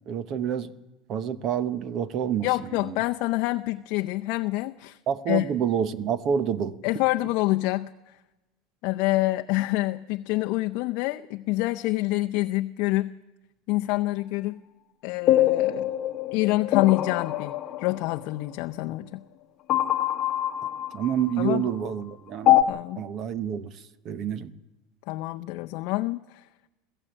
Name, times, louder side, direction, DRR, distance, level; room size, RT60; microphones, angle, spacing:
voice 1, 0.1-0.7 1.1-3.0 5.1-6.8 20.9-22.6 23.0-23.7 24.0-24.5, right 8 dB, 35° right, 0.9 m, -28 dB
voice 2, 2.4-5.0 5.3-5.4 6.8-8.2 8.8-13.2 13.7-14.6 15.0-15.9 16.3-17.5 17.8-19.2 21.4-21.6 22.7-23.0 25.1-26.5, left 19 dB, 55° left, 0.6 m, -26 dB
sound 1, 15.3-18.3 19.7-21.7 22.5-22.6, left 13 dB, 35° left, 1.0 m, -24 dB
21.5 x 14.5 x 8.8 m
supercardioid pair, 160°, 0 cm